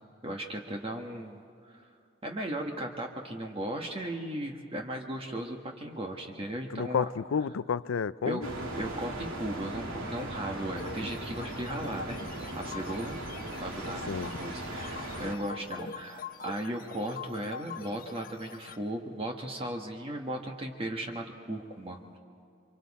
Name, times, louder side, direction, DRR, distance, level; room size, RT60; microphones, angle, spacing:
voice 1, 0.2-1.4 1.7-1.8 2.2-7.1 8.2-8.5 8.7-12.2 12.6-13.2 13.6-22.2, right 1 dB, 25° right, 1.5 m, -36 dB
voice 2, 6.7-8.5 14.1-14.3, left 6 dB, 75° left, 0.4 m, -30 dB
sound 1, 8.4-15.3, right 1 dB, 85° right, 2.6 m, -38 dB
sound 2, 10.8-18.8, left 5 dB, 45° left, 1.0 m, -44 dB
28.5 x 25.0 x 4.2 m
head